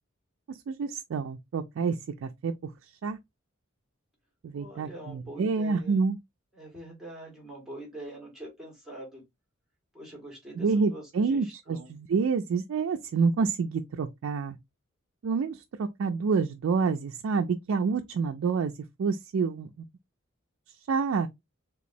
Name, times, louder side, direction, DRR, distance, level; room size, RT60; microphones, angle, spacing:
voice 1, 0.5-2.5 3.0-3.2 4.4-6.2 10.6-14.6 15.2-18.7 19.0-19.9 20.9-21.3, right 5 dB, 70° right, 0.3 m, -28 dB
voice 2, 4.5-6.1 6.5-9.2 9.9-11.9, right 1 dB, ahead, 1.6 m, -44 dB
3.4 x 3.0 x 2.6 m
head